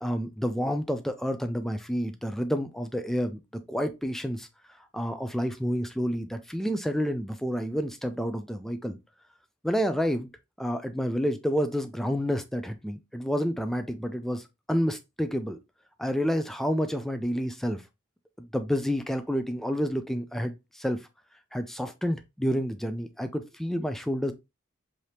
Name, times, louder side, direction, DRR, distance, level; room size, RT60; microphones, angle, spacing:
voice 1, 0.0-4.5 4.9-9.0 9.6-10.3 10.6-15.6 16.0-17.8 18.4-21.0 21.5-24.3, equal, ahead, 0.3 m, -29 dB
4.9 x 2.8 x 2.8 m
head